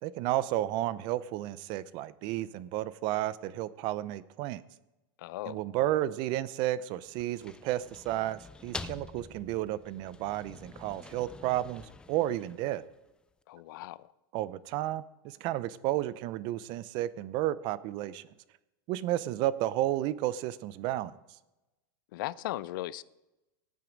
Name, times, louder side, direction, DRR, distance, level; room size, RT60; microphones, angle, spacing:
voice 1, 0.0-4.6 5.5-12.8 14.3-18.2 18.9-21.1, right 14 dB, 40° right, 0.6 m, -32 dB
voice 2, 5.2-5.6 13.5-14.1 22.1-23.0, left 16 dB, 65° left, 0.5 m, -37 dB
sound 1, 7.1-13.1, left 3 dB, 5° left, 0.4 m, -47 dB
17.0 x 9.3 x 5.2 m
supercardioid pair, 150°, 12 cm